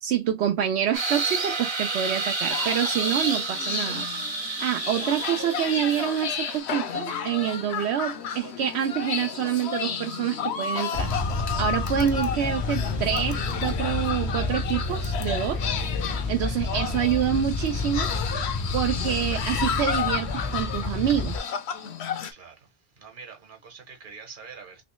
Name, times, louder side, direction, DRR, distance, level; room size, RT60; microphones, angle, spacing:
voice 1, 0.0-4.1 4.6-11.1 11.6-15.7 16.3-18.1 18.7-21.5, right 10 dB, 80° right, 0.9 m, -27 dB
sound 1, 0.9-6.6, right 3 dB, 30° right, 0.7 m, -30 dB
Drinking Game Byunghui, 2.5-22.3, left 7 dB, 80° left, 1.0 m, -32 dB
sound 2, 10.9-21.4, left 3 dB, 30° left, 0.6 m, -30 dB
voice 2, 22.3-24.8, right 5 dB, 50° right, 1.2 m, -45 dB
3.1 x 3.1 x 3.0 m
omnidirectional pair, 1.1 m